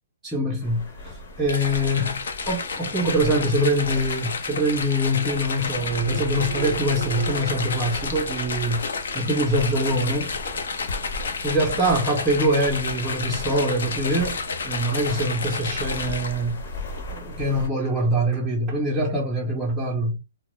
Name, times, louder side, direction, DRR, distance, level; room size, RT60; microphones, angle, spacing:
voice 1, 0.2-8.9 9.1-10.4 11.4-14.4 14.6-16.6 17.1-20.2, right 1 dB, 5° right, 0.5 m, -24 dB
sound 1, 0.6-17.7, left 2 dB, 50° left, 0.9 m, -38 dB
sound 2, 1.5-16.6, left 4 dB, 75° left, 0.6 m, -31 dB
sound 3, 5.7-9.4, right 6 dB, 65° right, 0.3 m, -33 dB
2.0 x 2.0 x 3.0 m
hypercardioid pair, 155°, 0 cm